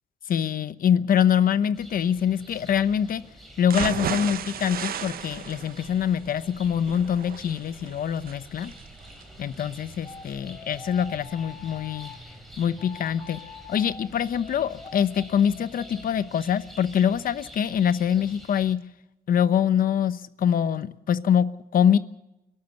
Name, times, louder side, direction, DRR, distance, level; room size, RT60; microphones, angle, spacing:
voice 1, 0.3-3.2 3.6-8.7 9.4-12.1 12.6-13.4 13.7-18.8 19.3-22.0, left 8 dB, 65° left, 14 dB, 1.0 m, -24 dB
sound 1, 1.7-18.7, equal, ahead, 3.5 m, -48 dB
sound 2, 3.6-11.6 12.0-12.1 12.5-12.6, right 9 dB, 70° right, 1.2 m, -35 dB
sound 3, 10.0-12.2 12.8-16.1, left 5 dB, 30° left, 1.7 m, -45 dB
29.5 x 12.5 x 8.0 m, 0.92 s
wide cardioid pair, 180°, 16 cm